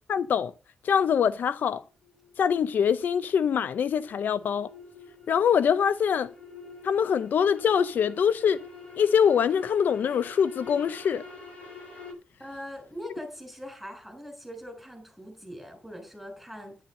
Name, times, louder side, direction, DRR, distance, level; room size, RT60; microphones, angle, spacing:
voice 1, 0.1-0.5 0.8-1.8 2.4-4.7 5.3-6.3 6.8-8.6 9.0-11.2, left 7 dB, 75° left, 0.6 m, -24 dB
sound 1, 2.0-12.1, left 4 dB, 45° left, 6.5 m, -46 dB
voice 2, 12.4-16.8, equal, ahead, 7.1 m, -42 dB
10.5 x 10.5 x 5.4 m
cardioid pair, 105°, 3 cm